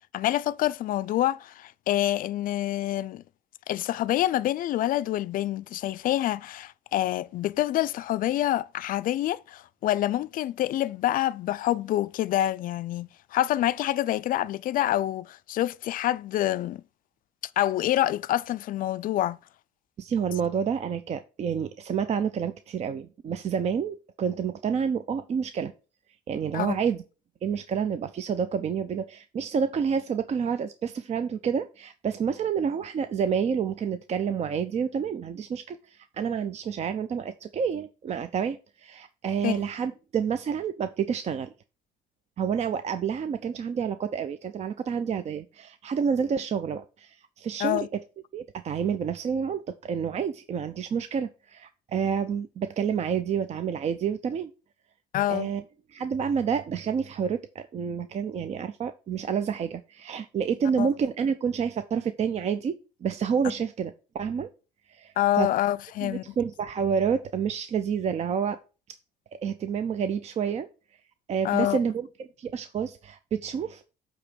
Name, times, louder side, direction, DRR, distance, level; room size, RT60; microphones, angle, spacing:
voice 1, 0.1-3.2 3.7-16.8 17.6-19.4 26.5-26.8 39.4-39.6 47.6-47.9 55.1-55.5 60.8-60.9 65.2-66.3 71.4-71.8, left 13 dB, 55° left, 0.4 m, -27 dB
voice 2, 20.0-25.7 26.3-27.0 27.4-41.5 42.4-48.0 48.3-54.5 55.3-55.6 55.9-64.5 64.9-65.5 66.0-68.6 69.4-70.7 71.3-73.8, right 7 dB, 40° right, 0.5 m, -29 dB
8.4 x 3.0 x 6.2 m
cardioid pair, 110°, 17 cm